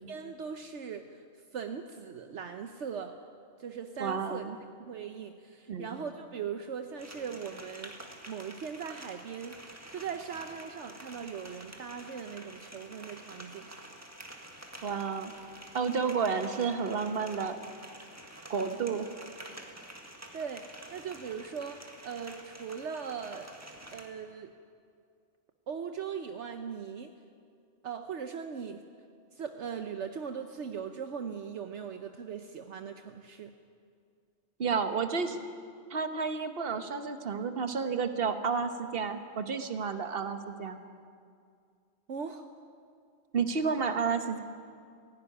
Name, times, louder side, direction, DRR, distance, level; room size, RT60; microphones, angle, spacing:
voice 1, 0.1-1.2 1.5-3.1 3.6-4.4 4.8-13.7 20.3-23.5 23.9-24.5 25.7-27.1 27.8-28.8 29.3-33.5 42.1-42.4, right 6 dB, 70° right, 7 dB, 1.2 m, -39 dB
voice 2, 4.0-4.6 5.7-6.0 14.8-15.3 15.7-17.6 18.5-19.1 34.6-35.4 35.9-40.8 43.3-44.4, right 5 dB, 50° right, 8 dB, 1.4 m, -31 dB
sound 1, 7.0-24.1, right 1 dB, 15° right, 1.8 m, -49 dB
16.5 x 16.5 x 9.9 m, 2.3 s
omnidirectional pair, 1.3 m